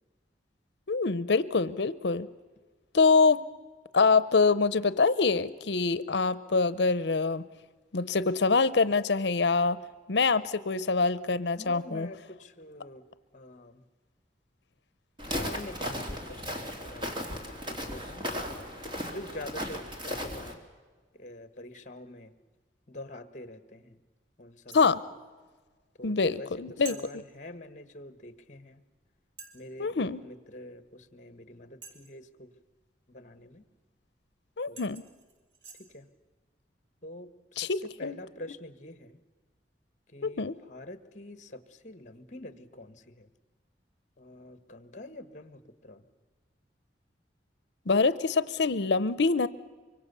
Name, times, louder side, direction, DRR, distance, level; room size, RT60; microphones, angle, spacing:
voice 1, 0.9-2.3 2.9-3.4 3.9-7.4 7.9-9.8 10.1-12.1 24.7-25.0 26.0-26.9 29.8-30.2 34.6-35.0 37.6-38.2 40.2-40.5 47.9-49.5, left 4 dB, 70° left, 16 dB, 0.7 m, -25 dB
voice 2, 11.6-13.0 13.3-13.8 15.2-17.1 17.7-18.8 19.1-20.6 21.1-22.3 22.9-24.0 24.4-25.0 25.9-28.8 29.5-32.5 33.1-33.6 34.7-34.9 35.8-36.1 37.0-39.2 40.1-43.3 44.2-46.0, left 1 dB, 40° left, 12 dB, 1.5 m, -46 dB
Walk footsteps, 15.2-20.5, equal, 25° right, 2.9 m, -36 dB
sound 1, 24.7-25.0 26.8-27.0 28.4-28.5 29.4-29.7 31.8-32.2 34.2-34.3 34.8-35.9, right 5 dB, 85° right, 3.7 m, -47 dB
24.5 x 24.0 x 6.9 m, 1.4 s
head